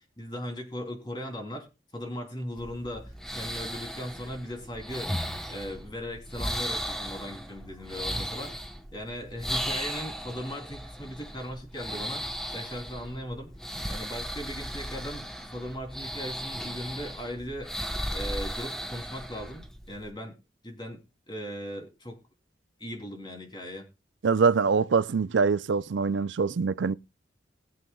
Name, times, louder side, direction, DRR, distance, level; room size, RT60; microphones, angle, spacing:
voice 1, 0.2-1.7 1.9-5.1 5.5-13.5 13.9-17.7 18.1-20.4 20.6-21.0 21.3-22.2 22.8-23.9, equal, 25° left, 3.3 m, -38 dB
sound 1, 2.6-20.1, equal, 5° left, 1.1 m, -36 dB
voice 2, 24.2-27.0, right 5 dB, 85° right, 0.5 m, -24 dB
22.0 x 7.6 x 2.3 m
head